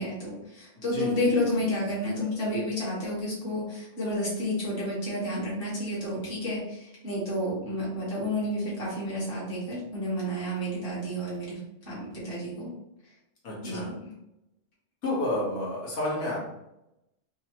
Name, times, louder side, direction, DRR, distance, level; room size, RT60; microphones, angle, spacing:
voice 1, 0.0-11.6 11.8-12.7 13.6-14.1, left 1 dB, 40° left, -7 dB, 1.8 m, -30 dB
voice 2, 0.8-1.9 13.4-13.9 15.0-16.4, left 1 dB, 85° left, -6 dB, 1.9 m, -31 dB
4.7 x 2.7 x 2.9 m, 0.88 s
omnidirectional pair, 1.5 m